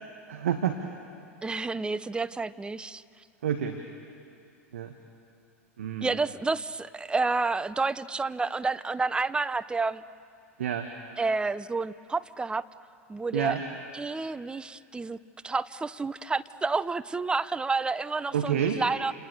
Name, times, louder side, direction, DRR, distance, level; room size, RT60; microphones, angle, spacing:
voice 1, 0.3-0.8 3.4-3.8 4.7-4.9 5.8-6.2 10.6-10.9 13.3-13.6 18.3-18.8, right 9 dB, 70° right, 5 dB, 1.7 m, -28 dB
voice 2, 1.4-3.0 6.0-10.0 11.2-12.7 13.1-13.5 13.9-15.2 15.4-19.1, right 3 dB, 10° right, 15 dB, 0.8 m, -29 dB
29.0 x 28.0 x 7.1 m, 2.4 s
figure-of-eight pair, 85°, 8 cm